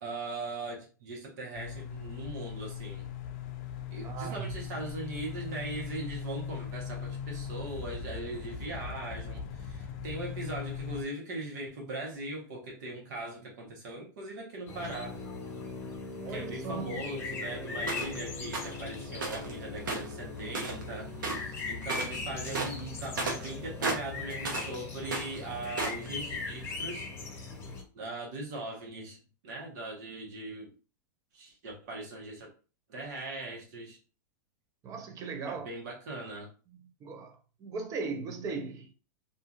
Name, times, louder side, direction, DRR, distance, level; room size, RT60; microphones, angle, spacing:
voice 1, 0.0-3.0 3.9-15.2 16.3-21.1 21.4-27.1 27.9-29.2 29.4-30.7 31.3-32.5 32.9-34.0 35.4-36.5, right 2 dB, 65° right, 1.1 m, -40 dB
sound 1, 1.5-11.0, left 7 dB, 50° left, 0.5 m, -39 dB
voice 2, 4.0-4.6 16.2-17.1 34.8-35.7 37.0-38.9, right 4 dB, 30° right, 0.6 m, -38 dB
sound 2, 14.7-27.8, left 3 dB, 20° left, 0.8 m, -39 dB
sound 3, 17.9-18.2 18.5-18.8 19.2-19.5 19.8-20.9 21.2-21.5 21.8-22.2 22.5-24.7 25.0-26.1, right 3 dB, 85° right, 0.8 m, -34 dB
2.7 x 2.5 x 2.5 m
hypercardioid pair, 120°, 11 cm